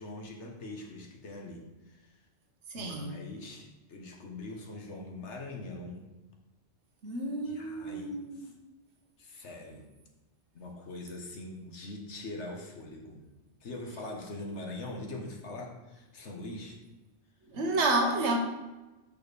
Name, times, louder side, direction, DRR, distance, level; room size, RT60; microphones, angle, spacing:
voice 1, 0.0-2.2 2.7-6.1 7.4-8.5 9.2-9.9 10.5-13.3 13.6-16.8, left 2 dB, 80° left, 1.5 m, -42 dB
voice 2, 2.7-3.2 7.0-8.5 17.5-18.4, right 2 dB, 80° right, 1.3 m, -30 dB
6.3 x 6.1 x 4.1 m
omnidirectional pair, 1.2 m